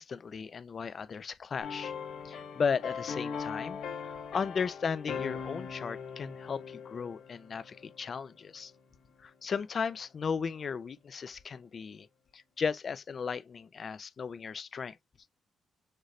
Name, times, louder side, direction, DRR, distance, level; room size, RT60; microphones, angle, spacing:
voice 1, 0.0-1.9 2.2-8.7 9.2-12.1 12.3-15.0, left 6 dB, 45° left, 0.5 m, -36 dB
sound 1, 1.6-8.2 8.5-8.7, left 6 dB, 80° left, 2.0 m, -40 dB
6.5 x 3.1 x 2.4 m
cardioid pair, 110°, 0 cm